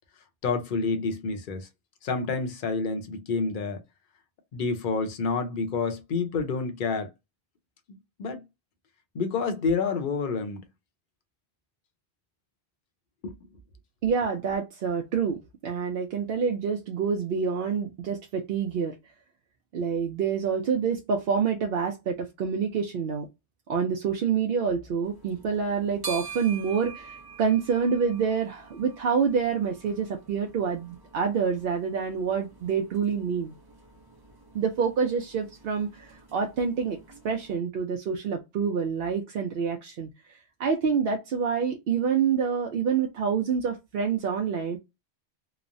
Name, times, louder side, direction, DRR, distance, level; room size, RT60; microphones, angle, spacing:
voice 1, 0.4-1.7 2.0-3.8 4.5-7.1 7.9-8.4 9.1-10.6 13.2-13.3, left 4 dB, 55° left, 0.8 m, -28 dB
voice 2, 14.0-18.9 19.7-23.3 23.7-33.5 34.5-37.0 37.2-44.8, right 6 dB, 65° right, 0.7 m, -27 dB
sound 1, 25.0-37.6, right 4 dB, 30° right, 0.5 m, -46 dB
3.0 x 2.0 x 2.5 m
omnidirectional pair, 1.1 m